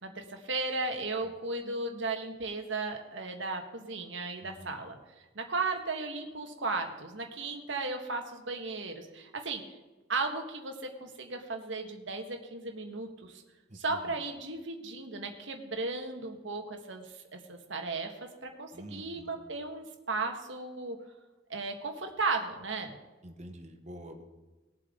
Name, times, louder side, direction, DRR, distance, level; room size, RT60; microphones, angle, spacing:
voice 1, 0.0-9.6 10.1-13.4 13.7-21.0 21.5-23.0, right 3 dB, 75° right, 4 dB, 1.7 m, -35 dB
voice 2, 4.4-4.8 13.7-14.2 18.7-19.4 23.2-24.2, right 1 dB, 35° right, 4 dB, 1.4 m, -47 dB
20.5 x 7.6 x 3.9 m, 1.2 s
head